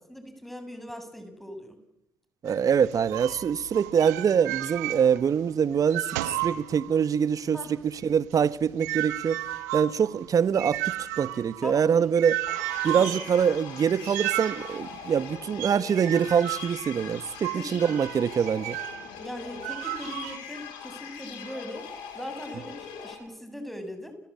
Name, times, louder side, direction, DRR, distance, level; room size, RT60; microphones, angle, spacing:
voice 1, 0.1-1.8 7.5-7.8 11.6-12.0 12.9-13.2 17.5-17.8 19.1-21.9 22.1-24.1, equal, ahead, 7.2 m, -40 dB
voice 2, 2.4-6.0 6.4-9.4 9.7-12.4 12.8-18.8, right 7 dB, 40° right, 1.2 m, -24 dB
sound 1, 2.5-5.5 5.7-7.2 7.6-19.1 19.6-20.4, right 16 dB, 75° right, 1.4 m, -34 dB
sound 2, 12.5-23.1, left 7 dB, 65° left, 6.6 m, -41 dB
30.0 x 21.0 x 8.7 m
hypercardioid pair, 55°, 9 cm